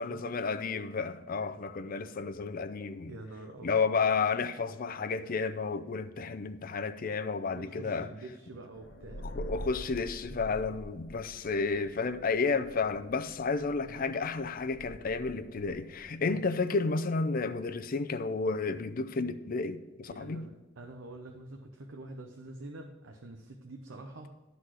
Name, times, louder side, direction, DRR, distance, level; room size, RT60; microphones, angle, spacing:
voice 1, 0.0-3.1 3.6-8.1 9.2-20.4, left 4 dB, 50° left, 0.5 m, -32 dB
voice 2, 3.1-3.8 7.5-9.3 10.6-10.7 13.8-14.1 16.3-16.5 20.1-24.3, right 2 dB, 80° right, 0.8 m, -46 dB
sound 1, 8.7-16.1, equal, 70° left, 1.1 m, -46 dB
11.5 x 4.1 x 6.3 m
head